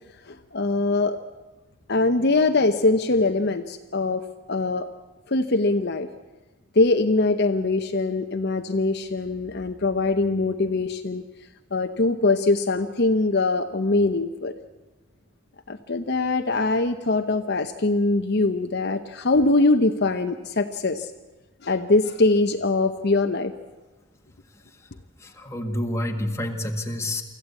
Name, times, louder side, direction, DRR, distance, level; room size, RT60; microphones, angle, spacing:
voice 1, 0.3-1.2 1.9-4.2 4.5-4.9 5.3-6.1 6.8-11.2 11.7-14.5 15.7-21.1 21.6-23.5, left 2 dB, 55° left, 6 dB, 0.9 m, -22 dB
voice 2, 25.2-27.2, left 1 dB, 15° left, 3 dB, 1.7 m, -28 dB
24.5 x 14.5 x 8.3 m, 1.1 s
head